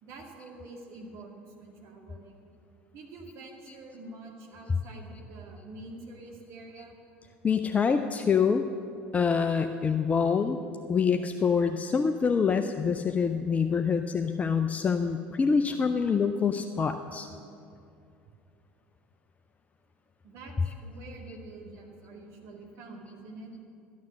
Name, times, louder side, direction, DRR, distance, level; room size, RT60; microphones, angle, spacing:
voice 1, 0.0-2.4 2.9-7.0 20.2-23.5, right 2 dB, 55° right, -1 dB, 2.3 m, -46 dB
voice 2, 7.4-8.6 9.1-10.6 10.9-17.3, left 6 dB, 25° left, 7 dB, 0.5 m, -26 dB
13.0 x 9.5 x 6.3 m, 2.5 s
figure-of-eight pair, 70°, 6 cm